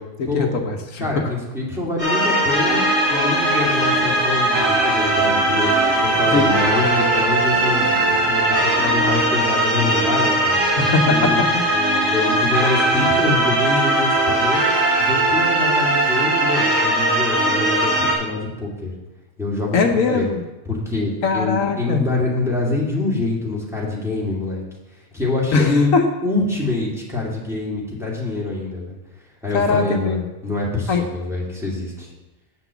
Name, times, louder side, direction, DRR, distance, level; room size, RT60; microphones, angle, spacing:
voice 1, 0.0-1.2 6.3-6.6 10.7-11.6 19.7-20.4 21.2-22.1 25.5-26.0 29.5-30.2 30.9-31.1, left 4 dB, 80° left, 4 dB, 1.3 m, -21 dB
voice 2, 1.0-5.7 6.0-10.7 11.1-14.7 15.0-18.9 19.4-20.3 20.7-24.6 25.1-25.9 26.2-29.0 29.4-30.2 30.4-32.1, left 2 dB, ahead, -5 dB, 2.3 m, -25 dB
sound 1, 2.0-18.1, right 1 dB, 70° right, 4.7 m, -19 dB
sound 2, 2.6-9.1, right 1 dB, 35° right, 2.2 m, -33 dB
8.2 x 5.9 x 6.9 m, 1.0 s
omnidirectional pair, 1.4 m